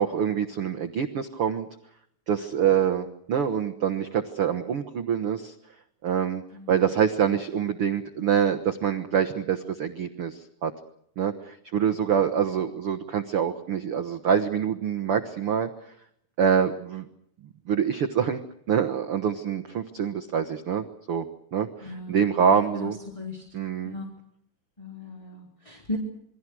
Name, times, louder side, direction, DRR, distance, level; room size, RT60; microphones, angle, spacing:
voice 1, 0.0-1.7 2.3-5.5 6.0-6.4 6.7-10.7 11.2-15.7 16.4-17.0 17.7-18.4 18.7-21.3 21.5-23.0 23.5-23.9, right 8 dB, 80° right, 5 dB, 1.2 m, -25 dB
voice 2, 21.8-22.2 22.5-23.4 23.8-24.0 24.8-26.0, left 2 dB, 10° left, 1 dB, 3.1 m, -37 dB
28.0 x 22.5 x 6.2 m, 0.71 s
omnidirectional pair, 4.6 m